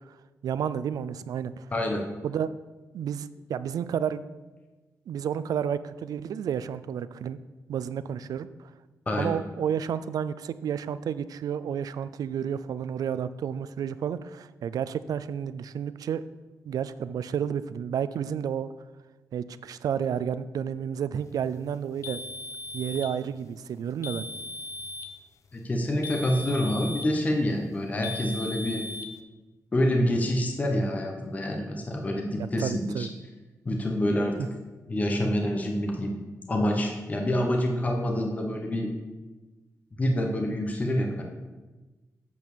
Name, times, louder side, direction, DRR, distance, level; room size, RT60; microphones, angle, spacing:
voice 1, 0.4-1.7 2.2-2.5 2.9-4.2 5.1-7.4 7.7-8.5 9.2-16.2 16.6-18.7 19.3-22.2 22.7-24.3 32.6-33.1, right 8 dB, 75° right, 14 dB, 0.4 m, -31 dB
voice 2, 1.7-2.0 9.1-9.4 25.5-28.8 29.7-33.1 33.6-34.5 34.9-36.2 36.5-38.9 40.0-41.2, left 1 dB, 25° left, 1 dB, 0.9 m, -27 dB
sound 1, 22.0-23.2 24.0-25.2 26.0-27.2 28.0-29.2, left 3 dB, 55° left, 0.6 m, -38 dB
8.4 x 4.4 x 6.8 m, 1.2 s
wide cardioid pair, 170°, 6 cm